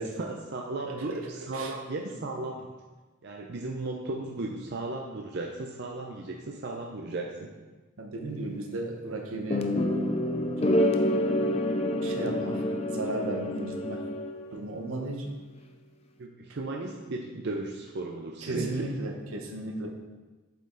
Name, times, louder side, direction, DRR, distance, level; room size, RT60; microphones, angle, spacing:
voice 1, 0.2-2.7 3.2-7.5 16.2-18.9, right 2 dB, 55° right, 0 dB, 0.6 m, -35 dB
voice 2, 0.9-1.7 8.0-9.7 12.0-14.1 14.5-15.4 18.4-19.9, right 2 dB, 80° right, 3 dB, 1.0 m, -35 dB
sound 1, 9.5-14.6, left 1 dB, 30° left, 0.5 m, -27 dB
7.6 x 5.4 x 3.9 m, 1.2 s
head